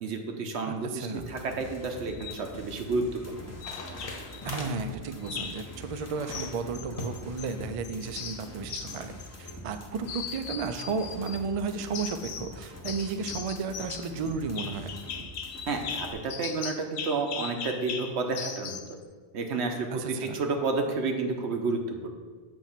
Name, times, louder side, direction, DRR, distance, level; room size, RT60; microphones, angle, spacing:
voice 1, 0.0-3.5 15.7-18.8 19.3-22.1, right 3 dB, 90° right, 4 dB, 1.1 m, -31 dB
voice 2, 0.7-1.3 4.4-9.1 9.4-14.9 19.9-20.4, right 5 dB, 60° right, 8 dB, 0.3 m, -33 dB
sound 1, 1.1-16.1, equal, 20° left, 0.6 m, -45 dB
sound 2, 2.1-2.4 3.6-4.4 5.2-5.7 6.3-7.5 7.8-9.8 10.1-11.4 11.9-12.5 12.8-18.9, left 7 dB, 75° left, 0.8 m, -39 dB
sound 3, 2.1-9.1, left 2 dB, 60° left, 1.1 m, -44 dB
7.0 x 3.1 x 5.7 m, 1.5 s
omnidirectional pair, 1.1 m